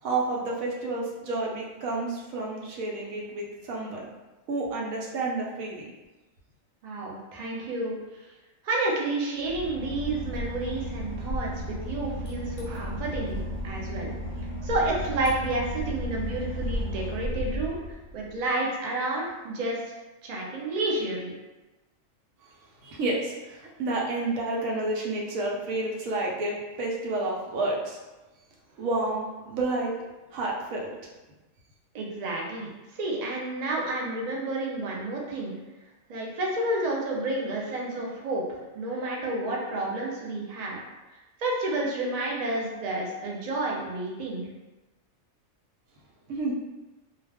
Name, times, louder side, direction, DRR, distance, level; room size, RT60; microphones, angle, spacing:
voice 1, 0.0-4.1 4.5-5.9 22.8-28.0 28.8-29.9 30.3-31.0 46.3-46.5, right 2 dB, 90° right, -2 dB, 1.0 m, -30 dB
voice 2, 6.8-8.3 8.6-14.1 14.4-19.8 20.2-21.3 31.9-35.6 36.1-40.8 41.4-44.5, right 2 dB, 55° right, -2 dB, 0.4 m, -30 dB
Boat Water vehicle / Engine, 9.4-18.4, left 1 dB, 45° left, 0.6 m, -34 dB
2.3 x 2.3 x 3.4 m, 1.1 s
omnidirectional pair, 1.4 m